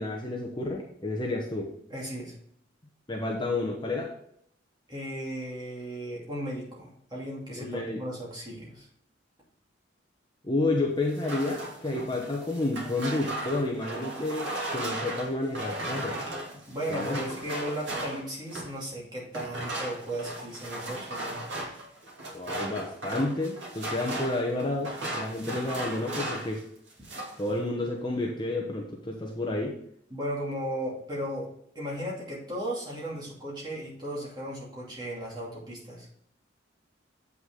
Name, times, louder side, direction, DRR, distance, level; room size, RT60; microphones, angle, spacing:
voice 1, 0.0-1.7 3.1-4.1 7.6-8.0 10.4-16.2 16.9-17.2 22.3-26.6 27.4-29.7, left 2 dB, 25° left, 0 dB, 1.0 m, -30 dB
voice 2, 1.9-2.3 4.9-8.9 16.7-21.4 30.1-36.1, right 1 dB, 20° right, -5 dB, 2.6 m, -36 dB
sound 1, 11.1-18.8 19.3-26.6 26.9-27.4, right 1 dB, 65° right, 2.5 m, -36 dB
8.0 x 5.9 x 3.7 m, 0.68 s
head